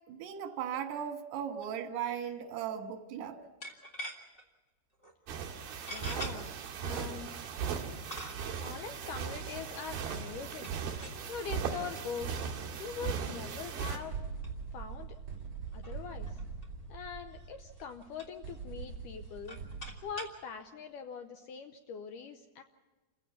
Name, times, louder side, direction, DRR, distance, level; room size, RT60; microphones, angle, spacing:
voice 1, 0.1-3.4, right 9 dB, 85° right, 6 dB, 3.6 m, -37 dB
sound 1, 1.6-1.8 2.1-2.2 3.6-4.4 5.0-5.1 5.9-6.3 7.2-7.3 8.1-8.6 10.6-11.3 11.9-12.2 12.6-12.7 13.5-13.6 13.9-14.1 14.4-14.5 14.8-14.9 15.2-15.3 15.7-16.7 17.3-17.5 17.8-18.6 19.2-20.4, equal, 30° left, 1.0 m, -45 dB
sound 2, 5.3-14.0, right 6 dB, 65° right, 3.8 m, -38 dB
voice 2, 5.9-6.5 6.8-7.4 8.6-10.7 11.3-12.5 12.8-14.2 14.7-15.2 15.7-16.4 16.9-19.6 20.0-22.6, left 6 dB, 75° left, 6 dB, 1.9 m, -42 dB
sound 3, 14.1-19.9, right 5 dB, 30° right, 7.2 m, -43 dB
28.0 x 16.0 x 7.0 m, 1.2 s
omnidirectional pair, 4.6 m